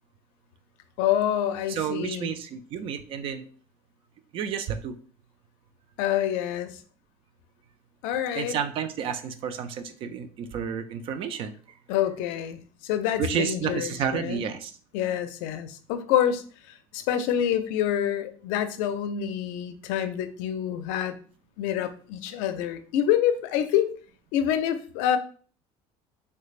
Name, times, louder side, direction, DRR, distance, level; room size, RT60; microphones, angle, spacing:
voice 1, 1.0-2.3 6.0-6.7 8.0-8.6 11.9-14.4 14.9-16.4 16.9-21.2 21.6-23.9 24.3-25.2, left 10 dB, 80° left, 10 dB, 0.4 m, -27 dB
voice 2, 1.7-3.5 4.3-5.0 8.3-11.5 13.2-14.7, right 8 dB, 45° right, 9 dB, 0.4 m, -31 dB
3.2 x 3.2 x 2.4 m, 0.42 s
cardioid pair, 150°, 13 cm